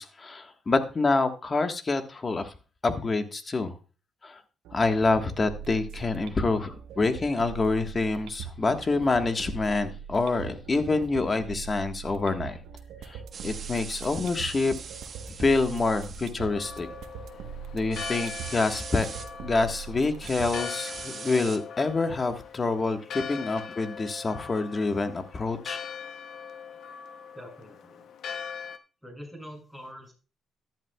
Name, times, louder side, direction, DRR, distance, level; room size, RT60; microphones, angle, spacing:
voice 1, 0.0-2.5 2.8-3.7 4.2-4.4 4.7-12.6 13.0-14.7 15.4-16.9 17.7-19.1 19.4-25.8, left 3 dB, 30° left, 7 dB, 1.4 m, -27 dB
sound 1, 4.6-20.6, right 7 dB, 90° right, 1.0 m, -41 dB
sound 2, 13.3-16.3 17.9-19.3 20.2-21.6, right 6 dB, 50° right, 1.1 m, -41 dB
Church bell, 16.4-28.8, left 7 dB, 70° left, 0.8 m, -41 dB
voice 2, 27.3-28.1 29.0-30.1, equal, 5° left, 1 dB, 6.8 m, -44 dB
14.0 x 11.0 x 2.3 m, 0.35 s
cardioid pair, 90°, 0 cm